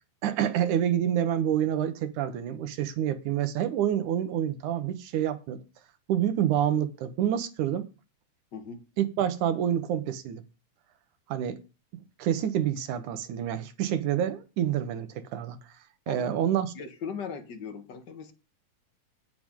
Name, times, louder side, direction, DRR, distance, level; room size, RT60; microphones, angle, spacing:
voice 1, 0.2-5.6 6.1-7.9 9.0-10.4 11.3-11.6 12.2-15.6 16.1-16.7, right 10 dB, 75° right, 2.6 m, -27 dB
voice 2, 8.5-8.8 16.1-16.3 16.7-18.3, left 6 dB, 45° left, 1.5 m, -39 dB
18.5 x 6.8 x 3.8 m
omnidirectional pair, 3.6 m